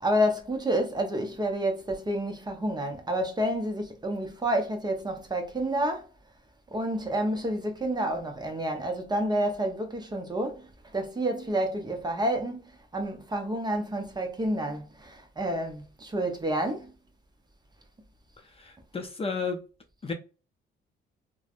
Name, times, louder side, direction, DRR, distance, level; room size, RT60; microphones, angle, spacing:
voice 1, 0.0-6.1 6.7-10.7 10.9-12.6 12.9-16.9, right 1 dB, 20° right, 0.7 m, -29 dB
voice 2, 18.5-19.7 20.0-20.1, left 4 dB, 30° left, 0.6 m, -32 dB
3.2 x 2.1 x 2.4 m
cardioid pair, 90°, 20 cm